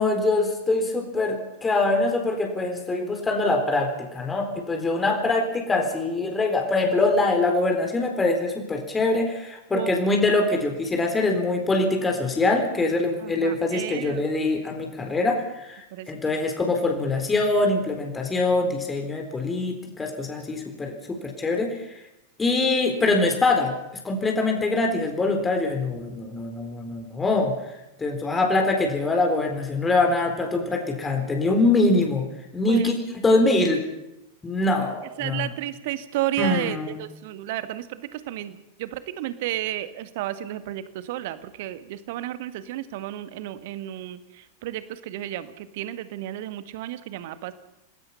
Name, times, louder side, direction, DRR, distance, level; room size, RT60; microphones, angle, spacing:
voice 1, 0.0-21.9 22.4-23.7 24.0-27.6 28.0-32.3 32.5-32.9 33.2-33.9 34.4-35.5 36.4-37.0, left 2 dB, 15° left, 2 dB, 4.0 m, -23 dB
voice 2, 13.2-14.3 15.9-16.5 32.7-32.9 35.2-47.5, right 14 dB, 50° right, 12 dB, 1.7 m, -32 dB
28.5 x 20.0 x 5.8 m, 0.88 s
figure-of-eight pair, 90°, 0 cm